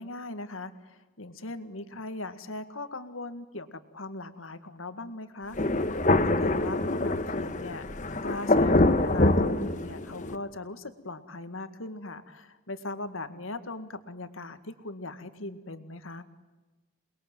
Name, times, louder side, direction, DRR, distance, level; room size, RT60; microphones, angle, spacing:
voice 1, 0.0-7.8 8.2-16.2, left 2 dB, 90° left, 10 dB, 2.0 m, -39 dB
Thunder, 5.5-10.3, left 2 dB, 40° left, 1.5 m, -25 dB
28.5 x 21.5 x 9.2 m, 1.1 s
head